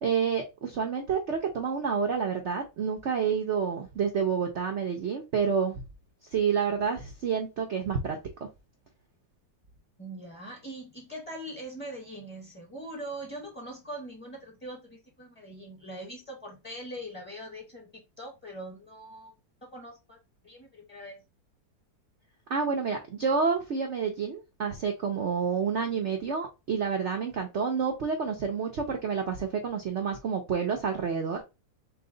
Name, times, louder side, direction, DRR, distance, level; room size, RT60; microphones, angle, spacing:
voice 1, 0.0-5.8 6.3-8.5 22.5-31.4, right 6 dB, 65° right, 0.7 m, -29 dB
voice 2, 10.0-19.3 19.6-20.2 20.4-21.2, right 1 dB, 10° left, 0.7 m, -42 dB
5.8 x 2.1 x 3.8 m
omnidirectional pair, 2.1 m